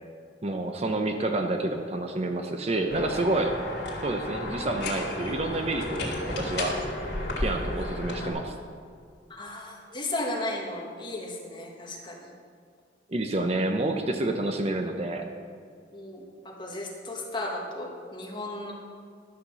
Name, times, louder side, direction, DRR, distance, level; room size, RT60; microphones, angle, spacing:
voice 1, 0.4-3.6 4.0-6.8 7.4-8.5 13.1-15.2, right 2 dB, 35° right, 5 dB, 0.6 m, -28 dB
sound 1, 2.9-8.3, left 1 dB, 65° left, 2.2 m, -33 dB
voice 2, 9.3-12.3 15.9-18.7, left 2 dB, 25° left, -1 dB, 1.6 m, -35 dB
11.5 x 5.9 x 6.8 m, 2.2 s
head